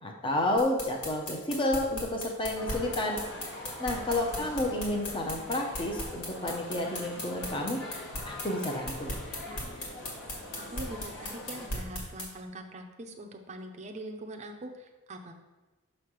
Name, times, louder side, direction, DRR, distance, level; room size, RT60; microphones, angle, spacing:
voice 1, 0.0-3.2 3.8-7.8 8.3-9.2, left 1 dB, 20° left, 1 dB, 0.7 m, -30 dB
sound 1, 0.6-12.3, left 1 dB, 80° left, 2.0 m, -37 dB
sound 2, 2.5-11.7, left 1 dB, 50° left, 1.1 m, -43 dB
voice 2, 4.3-5.0 10.6-15.3, right 1 dB, 30° right, 4 dB, 0.6 m, -43 dB
6.3 x 3.2 x 6.0 m, 1.1 s
head